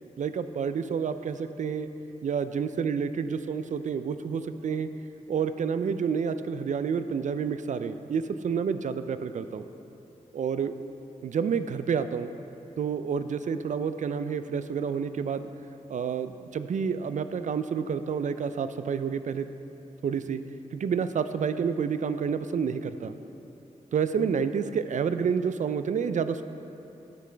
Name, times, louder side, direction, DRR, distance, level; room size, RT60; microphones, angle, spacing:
voice 1, 0.2-1.9 2.2-4.9 5.3-8.9 9.2-9.6 10.3-10.7 11.2-12.3 12.8-15.5 15.9-19.5 20.0-20.4 20.7-23.1 23.9-26.4, right 6 dB, 65° right, 11 dB, 0.4 m, -29 dB
9.9 x 8.3 x 3.4 m, 2.9 s
cardioid pair, 70°, 14 cm